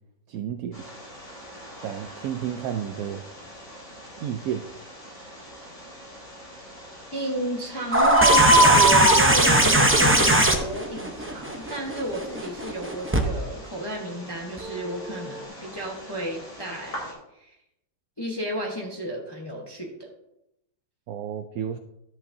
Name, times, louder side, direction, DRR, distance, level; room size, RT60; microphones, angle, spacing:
voice 1, 0.3-0.8 1.8-3.2 4.2-4.7 21.1-21.8, right 9 dB, 75° right, 7 dB, 1.0 m, -31 dB
Bird, 0.7-17.1, right 1 dB, 55° left, 3.7 m, -27 dB
voice 2, 7.1-17.5 18.2-20.1, right 1 dB, 20° left, -1 dB, 1.0 m, -32 dB
sound 1, 7.9-13.2 14.6-14.7, right 1 dB, 15° right, 0.5 m, -20 dB
12.5 x 7.9 x 2.7 m, 0.84 s
omnidirectional pair, 1.6 m